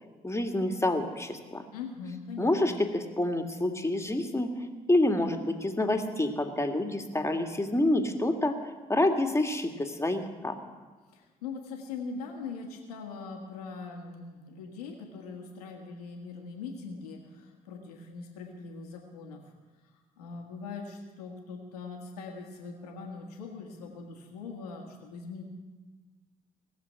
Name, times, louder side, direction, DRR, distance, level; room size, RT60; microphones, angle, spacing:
voice 1, 0.2-1.6 2.4-4.5 4.9-10.6, left 1 dB, 15° left, 5 dB, 2.0 m, -28 dB
voice 2, 1.7-2.8 11.1-19.4 20.2-25.4, left 4 dB, 85° left, 2 dB, 1.8 m, -41 dB
18.0 x 7.6 x 9.4 m, 1.3 s
hypercardioid pair, 45°, 19 cm